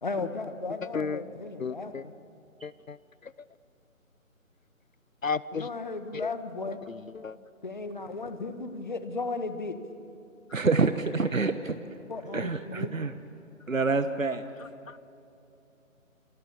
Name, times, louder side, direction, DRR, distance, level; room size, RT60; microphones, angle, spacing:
voice 1, 0.0-2.1 5.5-6.8 7.6-9.8 12.1-13.0, left 3 dB, 35° left, 9 dB, 1.5 m, -35 dB
voice 2, 1.6-2.0 2.6-3.0 3.2-3.3 5.2-5.7 6.1-6.3 7.1-7.4 14.9-15.0, left 5 dB, 70° left, 19 dB, 0.6 m, -33 dB
voice 3, 10.5-11.7 12.3-13.1 13.7-14.4, right 4 dB, 70° right, 10 dB, 1.3 m, -27 dB
28.5 x 23.0 x 7.2 m, 2.9 s
figure-of-eight pair, 155°, 42 cm